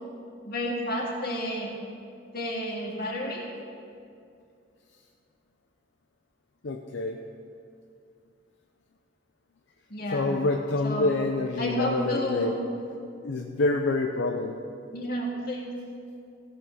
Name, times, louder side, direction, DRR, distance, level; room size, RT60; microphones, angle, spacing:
voice 1, 0.4-1.8 2.3-3.5 9.9-10.3 10.8-11.1 11.6-12.5 14.9-15.7, equal, 55° left, -2 dB, 2.1 m, -31 dB
voice 2, 6.6-7.2 10.1-12.5 13.2-14.6, left 2 dB, 75° left, 2 dB, 0.7 m, -27 dB
16.0 x 5.8 x 6.1 m, 2.4 s
head